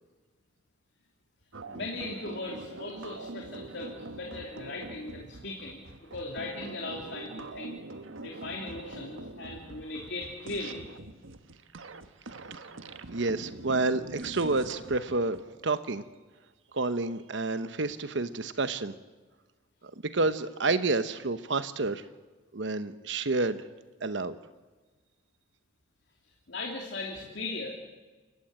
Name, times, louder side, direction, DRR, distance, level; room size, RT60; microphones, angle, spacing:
sound 1, 1.5-15.4, right 2 dB, 90° right, 1.4 m, -44 dB
voice 1, 1.7-7.8 8.2-10.9 26.5-27.7, left 2 dB, 60° left, 0 dB, 3.0 m, -38 dB
voice 2, 13.1-15.4 15.6-16.0 16.7-18.9 20.1-22.0 22.5-23.6 24.0-24.4, right 3 dB, 70° right, 12 dB, 1.0 m, -29 dB
29.0 x 15.5 x 8.8 m, 1.3 s
head